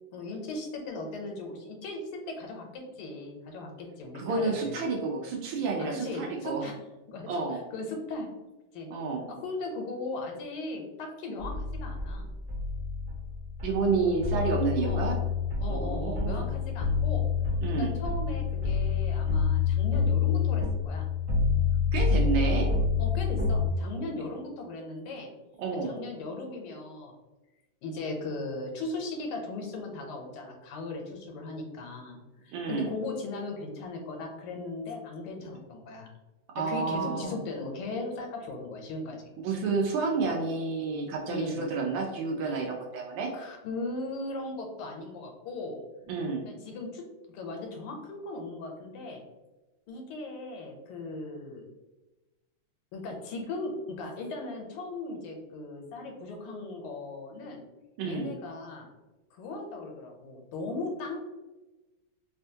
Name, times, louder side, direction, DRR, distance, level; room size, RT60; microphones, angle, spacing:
voice 1, 0.1-4.8 5.8-6.8 7.1-8.3 8.7-8.9 9.3-12.3 14.8-15.0 15.6-17.3 17.8-21.1 23.0-25.3 25.8-27.1 27.8-36.1 36.6-39.3 41.3-41.6 42.4-42.5 43.3-45.8 46.4-47.0 47.3-49.2 49.9-51.7 52.9-57.6 58.0-58.9 59.3-61.2, left 2 dB, 80° left, 2 dB, 1.5 m, -38 dB
voice 2, 4.1-6.7 7.3-7.6 8.9-9.3 13.6-15.2 15.7-16.5 17.6-17.9 21.9-22.7 25.6-26.0 32.5-32.9 36.5-37.4 39.4-43.3 46.1-46.4 58.0-58.3, right 4 dB, 75° right, 1 dB, 1.2 m, -30 dB
sound 1, 11.4-23.7, left 5 dB, 60° right, 0.6 m, -28 dB
3.5 x 2.2 x 2.6 m, 1.1 s
omnidirectional pair, 2.4 m